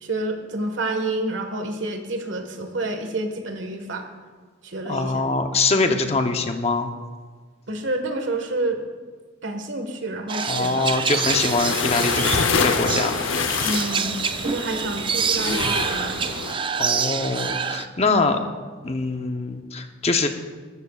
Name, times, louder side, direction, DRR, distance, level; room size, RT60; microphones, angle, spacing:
voice 1, 0.0-4.1 4.6-5.1 5.8-6.0 7.7-8.8 9.4-10.8 13.6-14.2 14.4-16.3 18.0-18.4, right 2 dB, 75° right, 5 dB, 1.6 m, -29 dB
voice 2, 4.8-6.9 10.5-13.1 16.8-18.4 18.8-20.3, left 3 dB, 35° left, 6 dB, 0.9 m, -23 dB
sound 1, 10.3-17.9, right 6 dB, 25° right, 0.4 m, -27 dB
sound 2, 11.2-16.5, left 5 dB, 90° left, 0.8 m, -26 dB
20.0 x 14.0 x 2.4 m, 1.5 s
head